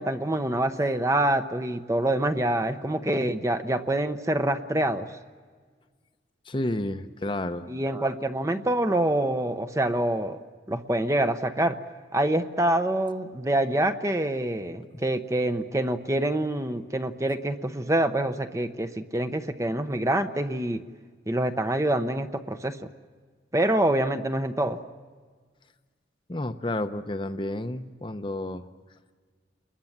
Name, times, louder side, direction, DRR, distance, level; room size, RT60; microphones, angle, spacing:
voice 1, 0.0-5.1 7.7-10.4 10.7-11.8 12.1-20.8 21.3-22.8 23.5-24.8, right 1 dB, 15° right, 8 dB, 0.8 m, -26 dB
voice 2, 6.5-7.7 14.9-15.0 26.3-28.6, left 1 dB, 25° left, 8 dB, 0.8 m, -31 dB
29.0 x 21.5 x 7.3 m, 1.5 s
head